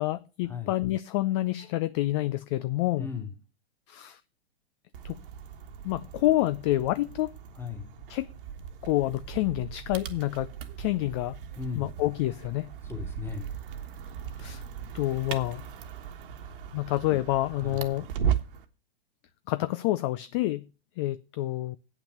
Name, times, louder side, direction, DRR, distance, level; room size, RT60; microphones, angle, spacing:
voice 1, 0.0-3.1 3.9-4.2 5.0-5.2 5.8-7.3 8.1-8.3 8.8-10.5 10.8-11.4 11.7-12.7 14.4-14.6 14.9-15.6 16.7-18.1 19.5-20.7 21.0-21.8, left 16 dB, 30° left, 0.4 m, -28 dB
voice 2, 3.0-3.3 7.5-7.9 11.6-11.9 12.8-13.5 17.6-17.9, left 5 dB, 5° left, 2.0 m, -36 dB
sound 1, 4.9-18.7, right 8 dB, 55° right, 1.4 m, -37 dB
8.7 x 5.9 x 7.9 m
figure-of-eight pair, 115°, 32 cm